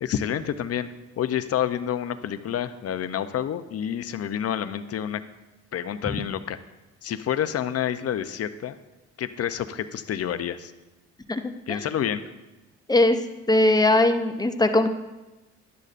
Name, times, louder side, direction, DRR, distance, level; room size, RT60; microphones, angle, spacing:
voice 1, 0.0-0.9 1.2-5.2 5.7-6.6 7.0-8.8 9.2-10.7 11.7-12.2, left 9 dB, 55° left, 11 dB, 0.6 m, -28 dB
voice 2, 13.5-14.9, left 2 dB, 15° left, 7 dB, 0.7 m, -19 dB
11.5 x 10.5 x 2.5 m, 1.1 s
cardioid pair, 90°, 30 cm